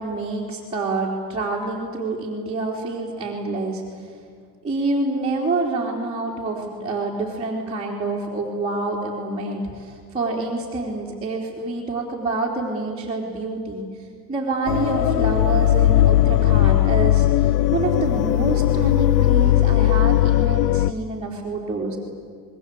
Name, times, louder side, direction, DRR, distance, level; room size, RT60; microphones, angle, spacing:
voice 1, 0.0-3.8 4.6-13.9 14.3-22.0, right 3 dB, 10° right, -6 dB, 3.5 m, -27 dB
sound 1, 14.7-20.9, left 14 dB, 85° left, 0.8 m, -18 dB
28.5 x 21.5 x 8.5 m, 2.1 s
cardioid pair, 155°, 46 cm